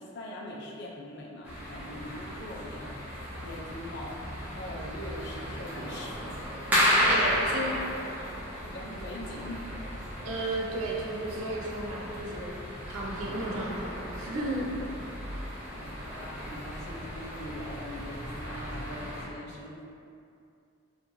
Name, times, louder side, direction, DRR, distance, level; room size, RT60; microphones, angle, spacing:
voice 1, 0.0-6.4 6.7-8.2 8.6-9.6 15.7-19.9, left 1 dB, 55° left, -3 dB, 0.4 m, -42 dB
sound 1, 1.4-19.3, equal, 10° right, 0.5 m, -33 dB
voice 2, 7.1-7.7 10.2-12.6 12.9-14.7, right 1 dB, 80° right, -3 dB, 0.4 m, -34 dB
2.9 x 2.4 x 2.6 m, 2.5 s
head